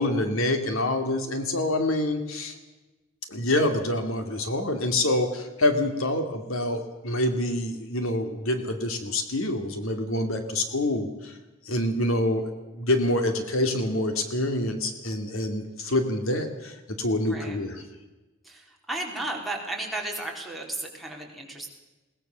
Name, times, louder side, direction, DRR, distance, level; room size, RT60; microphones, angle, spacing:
voice 1, 0.0-2.5 3.3-11.3 11.6-17.8, left 1 dB, 80° left, 6 dB, 2.4 m, -26 dB
voice 2, 17.2-17.6 18.4-21.7, right 2 dB, ahead, -2 dB, 4.0 m, -34 dB
21.0 x 19.0 x 6.8 m, 1.1 s
head